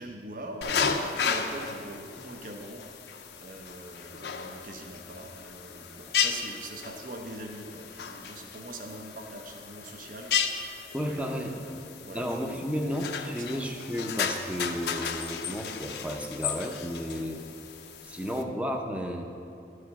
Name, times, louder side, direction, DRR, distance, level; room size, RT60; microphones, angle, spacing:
voice 1, 0.0-12.7 13.2-13.5 17.1-17.4, right 1 dB, 50° right, 3 dB, 0.8 m, -43 dB
sound 1, 0.6-18.4, left 6 dB, 70° left, 0.5 m, -34 dB
voice 2, 10.9-11.6 12.1-17.4 18.0-19.2, equal, 5° right, 3 dB, 0.6 m, -33 dB
12.0 x 4.9 x 5.7 m, 2.6 s
head